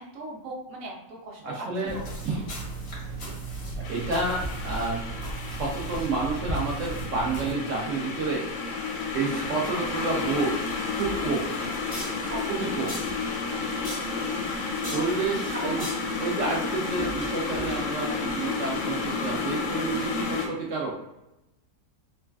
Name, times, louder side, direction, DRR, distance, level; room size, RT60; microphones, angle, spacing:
voice 1, 0.0-2.1 3.2-3.4 12.3-12.7 13.5-14.4 15.5-15.9 20.4-20.7, right 2 dB, 60° right, -1 dB, 0.9 m, -39 dB
voice 2, 1.4-2.0 2.2-2.4 3.9-5.0 5.5-8.4 9.1-10.5 11.0-11.5 12.5-13.0 14.9-15.8 16.2-21.0, right 3 dB, 85° right, -3 dB, 0.6 m, -29 dB
sound 1, 1.8-7.5, right 3 dB, 60° left, 0.6 m, -35 dB
sound 2, 3.8-20.5, left 4 dB, 80° left, 1.3 m, -31 dB
sound 3, 10.4-18.1, left 1 dB, 10° left, 0.4 m, -40 dB
3.1 x 2.3 x 2.2 m, 0.92 s
omnidirectional pair, 1.9 m